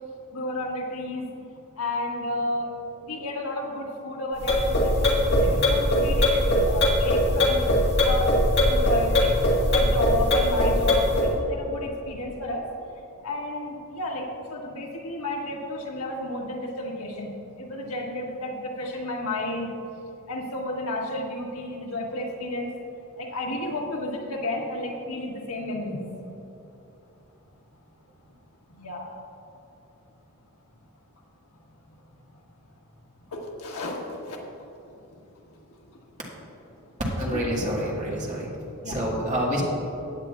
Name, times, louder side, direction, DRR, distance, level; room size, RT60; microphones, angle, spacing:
voice 1, 0.3-1.3 1.8-2.7 3.0-7.8 8.0-8.4 8.6-9.3 9.7-12.6 13.2-19.7 20.3-22.7 23.2-26.1 28.7-29.2 33.3-34.4 34.9-35.0 35.9-36.0 37.2-37.4 38.7-39.0, left 1 dB, 85° left, -1 dB, 1.6 m, -32 dB
sound 1, 4.4-11.3, left 1 dB, 50° left, 1.9 m, -21 dB
voice 2, 37.2-38.5 38.9-39.6, equal, 35° right, -4 dB, 2.0 m, -27 dB
15.5 x 9.3 x 2.5 m, 3.0 s
head